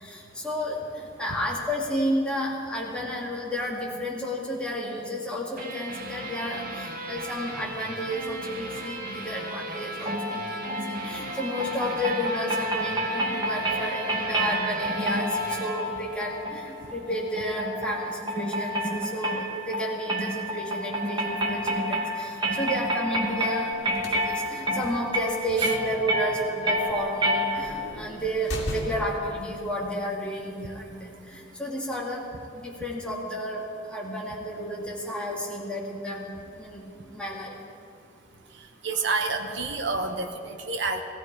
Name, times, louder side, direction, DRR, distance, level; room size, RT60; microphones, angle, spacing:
voice 1, 0.0-23.7 24.1-32.3 32.6-33.6 33.9-36.8 37.1-37.5, equal, 5° left, -4 dB, 2.6 m, -32 dB
sound 1, 5.6-16.8, right 1 dB, 50° right, 1.7 m, -37 dB
sound 2, 10.1-27.9, equal, 25° right, 2.0 m, -29 dB
sound 3, 23.7-29.3, left 1 dB, 65° left, 2.4 m, -39 dB
voice 2, 38.8-41.0, right 3 dB, 70° right, 4 dB, 1.1 m, -28 dB
17.5 x 15.0 x 4.9 m, 2.5 s
head